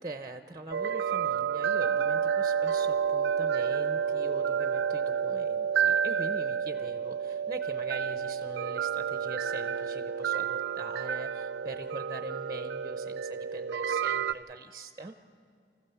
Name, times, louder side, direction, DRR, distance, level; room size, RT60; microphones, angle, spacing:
voice 1, 0.0-15.1, right 2 dB, 20° right, 8 dB, 0.6 m, -43 dB
sound 1, 0.7-14.3, right 7 dB, 90° right, 0.4 m, -30 dB
26.0 x 15.0 x 6.9 m, 2.3 s
head